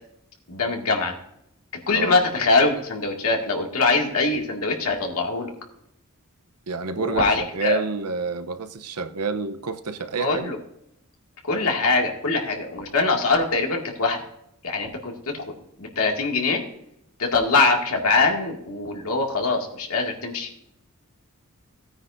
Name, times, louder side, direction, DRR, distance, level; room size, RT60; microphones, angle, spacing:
voice 1, 0.5-1.1 1.9-5.5 7.0-7.8 10.2-10.6 11.5-14.2 14.6-16.6 17.2-20.5, left 3 dB, 75° left, 1 dB, 2.1 m, -23 dB
voice 2, 6.7-7.3 7.5-10.5, right 4 dB, 90° right, 9 dB, 0.8 m, -28 dB
16.5 x 9.4 x 2.6 m, 0.77 s
head